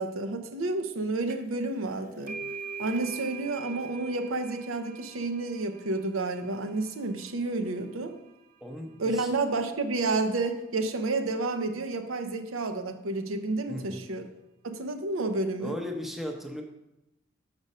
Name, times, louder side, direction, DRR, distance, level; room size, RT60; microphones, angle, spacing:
voice 1, 0.0-2.4 2.8-8.2 9.0-14.2 14.6-15.8, right 3 dB, 85° right, 7 dB, 0.7 m, -30 dB
sound 1, 1.3-1.6 1.9-9.2, right 5 dB, 40° right, 0.5 m, -44 dB
voice 2, 8.6-9.3 13.7-14.0 15.6-16.6, left 1 dB, ahead, 2 dB, 0.7 m, -36 dB
6.1 x 5.2 x 5.4 m, 0.92 s
head